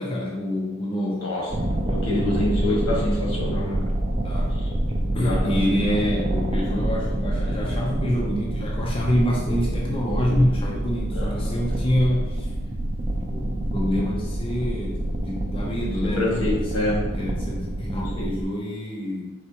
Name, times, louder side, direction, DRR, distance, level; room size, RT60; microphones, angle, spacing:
voice 1, 0.0-1.3 4.2-4.5 5.1-12.5 13.3-16.9 17.1-19.3, equal, 25° left, -3 dB, 0.5 m, -26 dB
sound 1, 1.5-18.4, right 1 dB, 25° right, 0.4 m, -27 dB
voice 2, 1.8-3.8 4.6-4.7 5.1-5.7 11.1-11.5 16.2-17.0 18.2-18.3, left 1 dB, 85° left, -4 dB, 1.4 m, -26 dB
4.3 x 3.5 x 2.8 m, 1.2 s
head